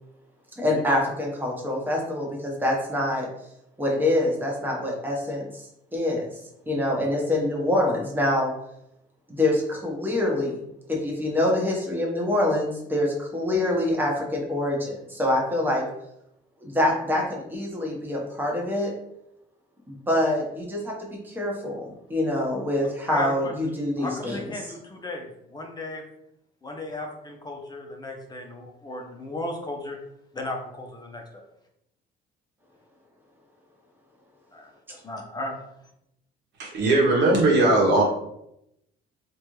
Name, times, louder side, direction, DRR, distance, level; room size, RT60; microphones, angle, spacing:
voice 1, 0.6-3.3 3.8-5.6 5.9-6.3 6.7-8.5 9.3-15.8 16.6-18.9 19.9-24.4, left 1 dB, 10° right, -2 dB, 1.1 m, -25 dB
voice 2, 23.1-23.5 24.0-26.0 26.6-30.0 30.3-31.4 34.5-35.6, left 2 dB, 20° left, 2 dB, 0.8 m, -35 dB
voice 3, 36.7-38.0, right 2 dB, 70° right, -2 dB, 1.1 m, -18 dB
3.2 x 2.6 x 3.1 m, 0.80 s
cardioid pair, 95°, 19 cm